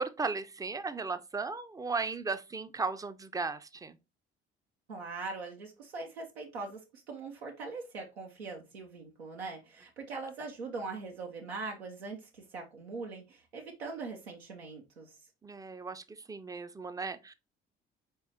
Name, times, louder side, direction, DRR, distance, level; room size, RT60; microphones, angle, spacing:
voice 1, 0.0-4.0 15.4-17.3, right 4 dB, 10° right, 0.4 m, -36 dB
voice 2, 4.9-15.2, right 3 dB, 85° right, 0.5 m, -41 dB
4.1 x 3.6 x 2.7 m
figure-of-eight pair, 45°, 31 cm